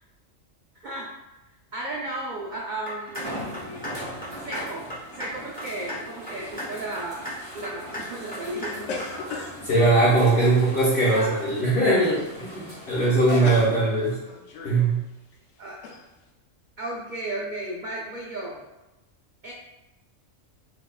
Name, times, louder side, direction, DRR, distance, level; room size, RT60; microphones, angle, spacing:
voice 1, 0.8-1.1 1.7-3.8 4.5-4.9 5.1-7.3 7.5-9.1 10.4-10.5 11.1-11.4 13.0-13.9 15.6-15.8 16.8-18.6 19.4-19.5, right 1 dB, 80° right, -3 dB, 0.4 m, -34 dB
sound 1, 2.1-2.2 3.1-14.2 14.9-15.0 18.4-18.5, equal, 25° right, 1.0 m, -40 dB
sound 2, 2.9-3.2 3.5-3.9 4.2-4.6 4.9-5.3 5.6-6.0 6.3-6.7 6.9-7.3 7.6-8.0 8.3-8.7 9.0-9.1, equal, 10° left, 0.7 m, -35 dB
sound 3, 8.3-11.0 11.5-11.8 12.1-12.4 12.7-12.8 13.0-14.9 15.3-15.4 15.8-16.0, left 4 dB, 70° left, 0.9 m, -38 dB
voice 2, 9.6-14.2 14.6-15.0, right 2 dB, 55° left, -11 dB, 1.2 m, -20 dB
4.1 x 2.8 x 2.3 m, 1.0 s
omnidirectional pair, 1.4 m